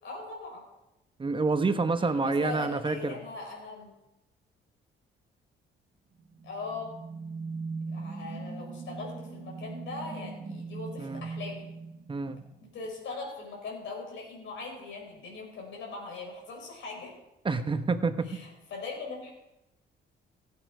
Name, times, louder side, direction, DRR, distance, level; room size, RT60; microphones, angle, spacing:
voice 1, 0.0-0.6 2.0-3.9 6.4-6.9 7.9-11.7 12.7-17.1 18.3-19.3, left 3 dB, 75° left, 0 dB, 5.2 m, -40 dB
voice 2, 1.2-3.2 11.0-11.3 12.1-12.4 17.4-18.4, right 4 dB, 25° right, 10 dB, 1.0 m, -28 dB
sound 1, 6.2-12.7, right 4 dB, 55° right, 1.6 m, -40 dB
16.0 x 8.7 x 4.6 m, 0.92 s
cardioid pair, 90°, 20 cm